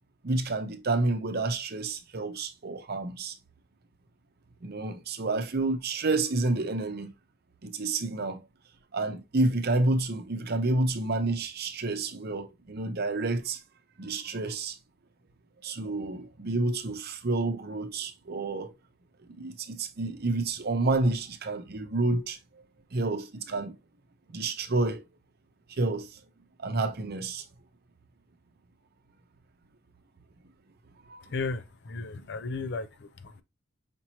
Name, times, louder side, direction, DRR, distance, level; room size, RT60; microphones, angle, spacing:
voice 1, 0.2-3.3 4.6-7.1 7.6-8.4 8.9-13.6 14.0-14.8 15.6-18.7 19.3-22.4 22.9-23.7 24.3-25.0 25.8-26.2 26.6-27.4 31.1-31.2, right 2 dB, 50° right, 0.7 m, -29 dB
voice 2, 31.2-33.4, left 3 dB, 60° left, 0.6 m, -35 dB
5.1 x 3.0 x 2.8 m
head